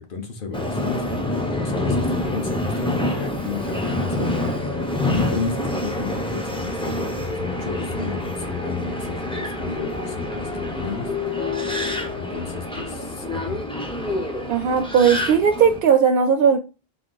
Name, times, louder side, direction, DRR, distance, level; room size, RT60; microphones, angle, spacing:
voice 1, 0.0-11.1 12.2-13.7, left 4 dB, 55° left, 1.1 m, -32 dB
Subway metro underground, 0.5-15.8, left 1 dB, 5° left, 0.5 m, -27 dB
voice 2, 14.5-16.6, right 7 dB, 65° right, 0.7 m, -17 dB
3.8 x 2.9 x 3.9 m
omnidirectional pair, 1.1 m